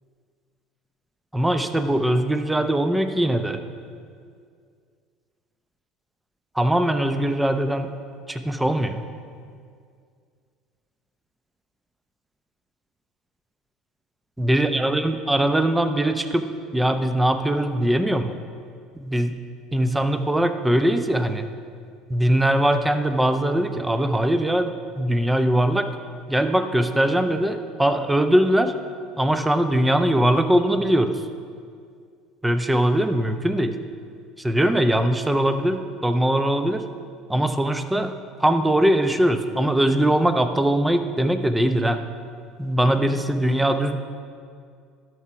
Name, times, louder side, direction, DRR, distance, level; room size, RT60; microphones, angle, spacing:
voice 1, 1.3-3.6 6.5-7.9 8.3-9.1 14.4-18.4 18.9-19.4 19.7-21.5 22.1-25.9 26.3-28.7 29.2-31.3 32.4-33.8 34.4-36.8 37.3-38.1 38.4-42.0 42.6-44.0, right 1 dB, 10° right, 9 dB, 0.7 m, -21 dB
12.5 x 4.8 x 5.7 m, 2.2 s
hypercardioid pair, 75°, 0 cm